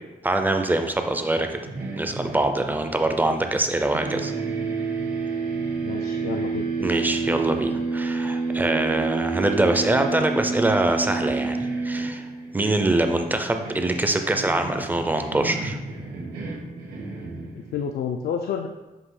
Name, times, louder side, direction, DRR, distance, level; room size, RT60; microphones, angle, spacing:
voice 1, 0.2-1.5 2.0-4.3 6.8-12.3 12.5-15.8, right 2 dB, 10° right, 6 dB, 0.4 m, -24 dB
sound 1, 1.5-3.7 3.9-17.9, right 4 dB, 85° right, 1.3 m, -30 dB
voice 2, 5.8-6.7 17.5-18.7, left 7 dB, 75° left, 5 dB, 0.4 m, -29 dB
7.5 x 2.7 x 4.8 m, 1.1 s
wide cardioid pair, 180°, 16 cm